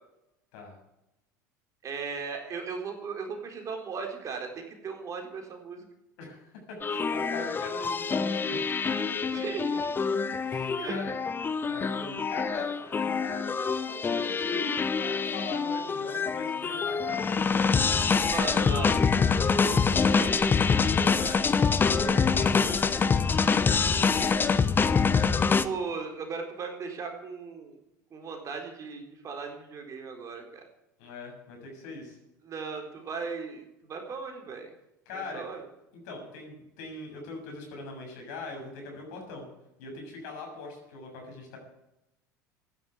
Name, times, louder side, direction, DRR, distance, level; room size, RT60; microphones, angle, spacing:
voice 1, 1.8-5.9 9.3-9.9 10.8-11.0 18.3-19.0 19.9-20.6 25.6-27.8 28.1-30.6 32.4-34.7 35.1-35.6, right 5 dB, 35° right, 3 dB, 3.9 m, -37 dB
voice 2, 6.2-9.2 10.4-11.1 11.7-18.7 20.2-20.3 20.8-23.5 31.0-32.2 35.1-35.6 36.1-39.5 39.8-41.6, left 2 dB, 60° left, 1 dB, 7.0 m, -42 dB
sound 1, 6.8-25.7, left 5 dB, 20° left, 1.0 m, -25 dB
15.5 x 11.0 x 8.1 m, 0.87 s
figure-of-eight pair, 70°, 10 cm